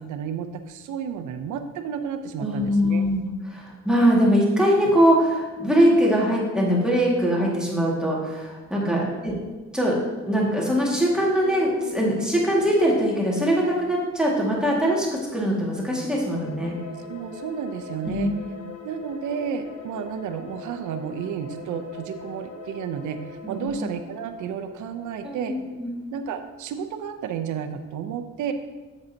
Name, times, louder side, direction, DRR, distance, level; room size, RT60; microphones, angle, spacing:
voice 1, 0.0-3.0 8.8-9.4 17.0-18.3 18.8-25.6 26.1-28.5, right 7 dB, 80° right, 7 dB, 0.7 m, -32 dB
voice 2, 2.4-9.3 9.7-10.0 10.2-16.8 18.0-18.3 23.4-23.7 25.2-25.9, equal, ahead, -4 dB, 1.9 m, -22 dB
sound 1, 11.4-15.0 15.6-26.2, left 3 dB, 55° left, 1.1 m, -42 dB
7.8 x 7.3 x 2.8 m, 1.2 s
cardioid pair, 90°, 30 cm